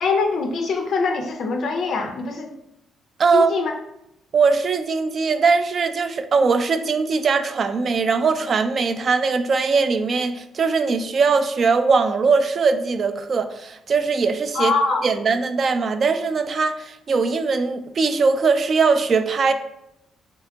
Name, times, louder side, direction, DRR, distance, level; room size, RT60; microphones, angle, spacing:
voice 1, 0.0-2.5 3.3-3.7 14.5-15.0, left 4 dB, 65° left, 4 dB, 0.3 m, -23 dB
voice 2, 3.2-3.5 4.3-14.7 15.0-19.5, right 4 dB, 45° right, 9 dB, 0.3 m, -20 dB
3.5 x 2.8 x 3.4 m, 0.85 s
cardioid pair, 90°, 0 cm